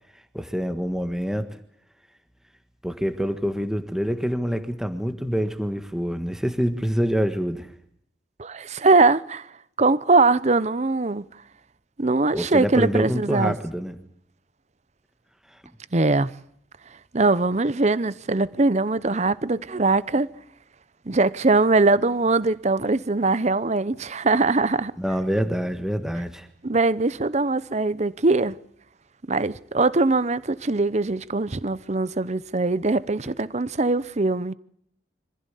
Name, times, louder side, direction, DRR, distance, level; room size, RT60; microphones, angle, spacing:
voice 1, 0.3-1.5 2.8-7.7 12.3-14.0 25.0-26.5, equal, 5° right, 1.5 m, -26 dB
voice 2, 8.4-9.5 9.8-11.2 12.0-13.6 15.9-16.3 17.1-20.3 21.1-24.9 26.6-28.6 29.3-34.5, right 3 dB, 40° right, 0.8 m, -21 dB
25.5 x 15.5 x 8.3 m
head